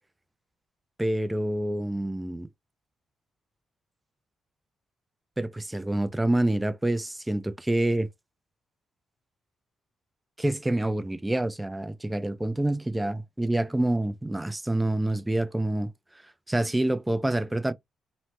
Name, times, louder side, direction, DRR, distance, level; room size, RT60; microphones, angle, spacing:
voice 1, 1.0-2.5 5.4-8.1 10.4-15.9 16.5-17.7, right 1 dB, 10° right, 0.3 m, -27 dB
3.0 x 2.1 x 2.9 m
cardioid pair, 105°, 0 cm